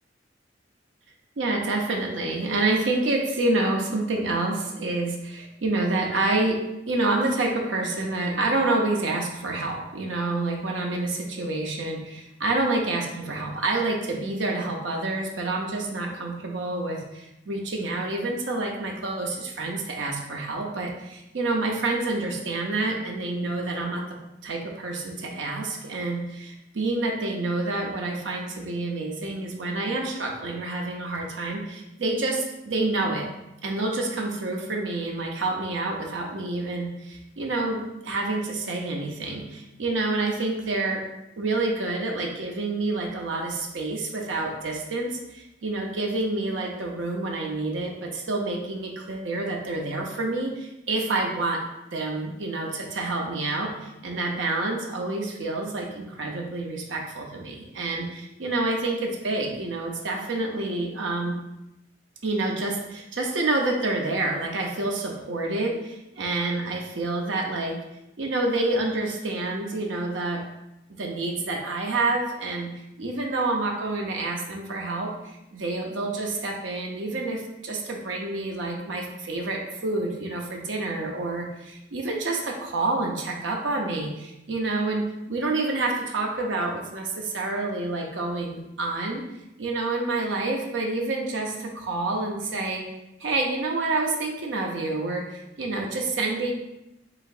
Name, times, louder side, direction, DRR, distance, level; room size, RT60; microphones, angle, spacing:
voice 1, 1.4-6.6 6.9-24.0 24.4-33.3 33.6-41.0 41.4-51.6 51.9-61.4 62.2-67.8 68.2-70.4 71.0-72.7 73.0-89.2 89.6-92.8 93.2-96.5, right 2 dB, 85° right, 0 dB, 0.7 m, -28 dB
4.9 x 3.7 x 2.5 m, 0.90 s
head